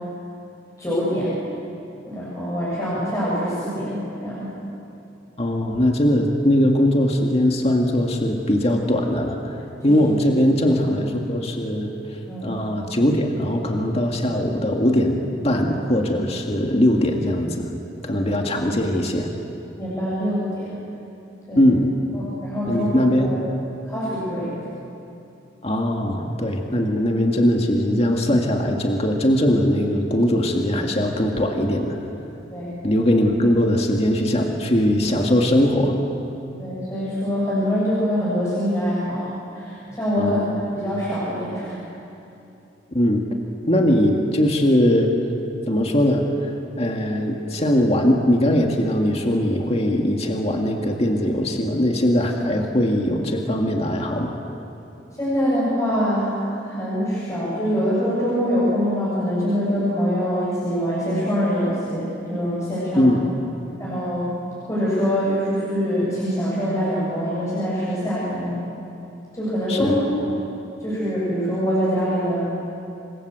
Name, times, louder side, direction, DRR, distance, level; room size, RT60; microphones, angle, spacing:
voice 1, 0.8-1.3 2.1-4.6 9.8-9.9 12.3-12.5 19.8-20.7 21.5-21.7 22.1-23.4 23.9-24.5 32.5-32.7 36.6-40.4 40.8-41.8 55.2-63.2 63.8-64.4 64.6-68.6 69.3-70.3 70.8-72.5, equal, 15° left, -9 dB, 8.0 m, -24 dB
voice 2, 5.4-9.6 9.8-11.9 12.4-17.7 18.0-19.3 21.6-21.9 22.7-23.3 25.6-32.0 32.8-36.0 40.2-40.7 42.9-43.3 43.7-45.2 45.7-46.5 46.8-54.4 63.0-63.2 69.7-70.0, left 1 dB, 35° left, 2 dB, 2.0 m, -20 dB
29.0 x 24.5 x 7.8 m, 2.8 s
head